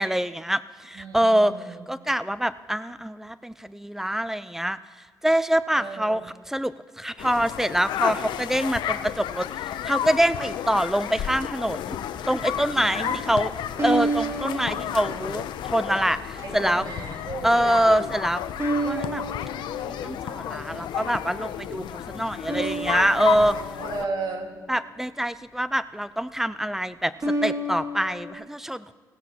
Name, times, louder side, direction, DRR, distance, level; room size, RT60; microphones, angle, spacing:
voice 1, 0.0-4.8 5.2-6.2 6.5-12.0 12.3-13.5 13.8-16.8 17.4-18.4 18.8-19.2 19.8-23.6 24.7-27.1 27.4-28.9, right 1 dB, 5° right, 15 dB, 0.5 m, -25 dB
voice 2, 0.9-1.8 5.8-6.2 12.9-13.2 16.4-17.6 23.8-24.5, right 3 dB, 60° right, 0 dB, 2.5 m, -34 dB
sound 1, 7.2-24.0, left 10 dB, 80° left, 0.5 m, -32 dB
sound 2, 10.0-10.8 13.8-15.8 16.4-16.9 18.6-20.6 22.5-24.9 27.2-28.3, right 1 dB, 35° right, 2.2 m, -31 dB
sound 3, 11.9-24.1 24.4-24.5, left 1 dB, 35° left, 2.1 m, -48 dB
19.0 x 16.0 x 2.9 m, 1.5 s
supercardioid pair, 60°, 8 cm